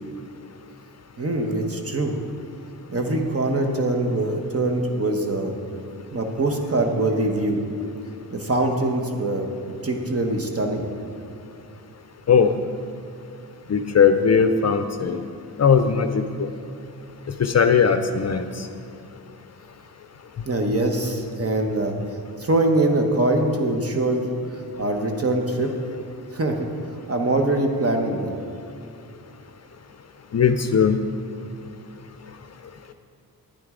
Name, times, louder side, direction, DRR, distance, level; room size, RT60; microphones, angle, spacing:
voice 1, 1.2-2.2 2.9-5.5 6.1-7.6 8.3-9.5 9.8-10.9 20.5-21.9 22.4-25.7 26.3-26.7 27.1-28.3, right 2 dB, 40° right, 3 dB, 1.2 m, -23 dB
voice 2, 13.7-15.2 15.6-16.5 17.4-18.5 30.3-31.0, left 6 dB, 45° left, 8 dB, 0.5 m, -18 dB
10.0 x 9.4 x 3.8 m, 2.5 s
cardioid pair, 75°, 38 cm